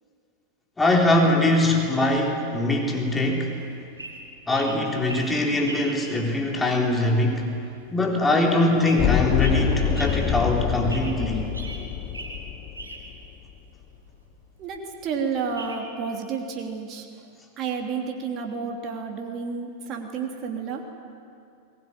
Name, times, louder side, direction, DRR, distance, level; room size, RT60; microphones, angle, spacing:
voice 1, 0.8-3.6 4.5-7.5 7.9-11.5, left 1 dB, 10° left, 0 dB, 3.9 m, -22 dB
sound 1, 3.1-15.8, right 2 dB, 80° right, 3.8 m, -42 dB
sound 2, 9.0-13.3, left 10 dB, 35° left, 1.3 m, -26 dB
voice 2, 14.6-17.1 17.6-20.8, right 5 dB, 35° right, 2 dB, 3.0 m, -31 dB
22.0 x 19.5 x 9.9 m, 2.4 s
figure-of-eight pair, 90°, 0 cm